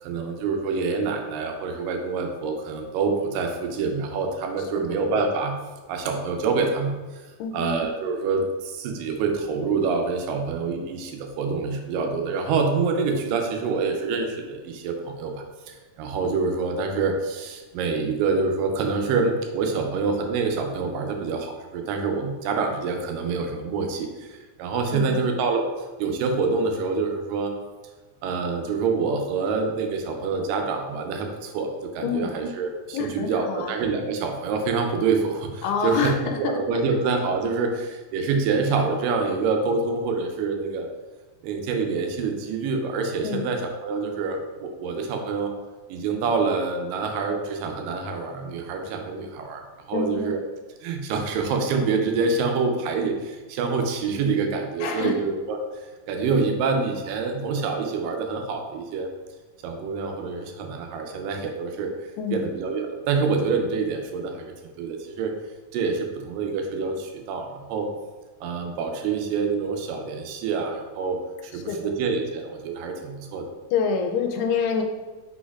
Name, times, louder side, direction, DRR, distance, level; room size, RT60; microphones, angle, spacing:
voice 1, 0.0-5.6 5.9-7.2 7.5-25.7 26.0-27.5 28.2-40.9 41.4-45.5 45.9-49.6 49.9-50.4 50.8-59.1 59.6-61.9 62.3-65.3 65.7-67.9 68.4-73.5, right 4 dB, 85° right, 4 dB, 2.2 m, -26 dB
voice 2, 7.4-7.7 24.9-25.2 32.0-32.3 32.9-33.7 35.6-36.6 43.2-43.4 49.9-50.3 54.8-55.1 62.2-62.4 71.7-72.0 73.7-74.8, left 6 dB, 85° left, 3 dB, 2.2 m, -27 dB
5.2 x 4.2 x 2.3 m, 1.2 s
omnidirectional pair, 3.9 m